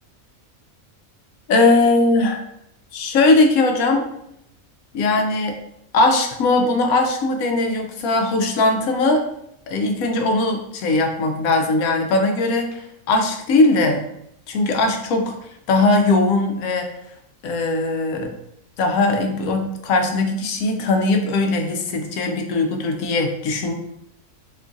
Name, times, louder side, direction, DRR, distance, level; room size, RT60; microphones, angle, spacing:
voice 1, 1.5-2.4 2.9-4.1 4.9-5.6 5.9-9.2 9.7-12.8 13.1-14.0 14.5-15.4 15.7-16.9 17.4-18.3 18.8-23.7, left 2 dB, 85° left, 4 dB, 1.1 m, -19 dB
3.0 x 2.4 x 3.8 m, 0.77 s
omnidirectional pair, 1.4 m